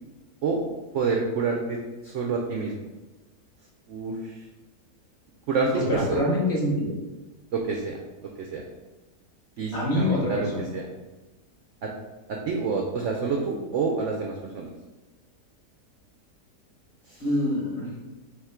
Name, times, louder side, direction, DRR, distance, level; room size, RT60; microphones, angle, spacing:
voice 1, 0.9-2.7 3.9-4.4 5.5-6.2 7.5-8.6 9.6-10.9 11.8-11.9 12.3-14.7 17.1-17.2, right 4 dB, 80° right, 1 dB, 0.6 m, -28 dB
voice 2, 5.7-6.9 9.7-10.6 17.2-17.9, left 1 dB, 45° left, -4 dB, 1.2 m, -25 dB
3.6 x 2.9 x 4.3 m, 1.1 s
omnidirectional pair, 1.8 m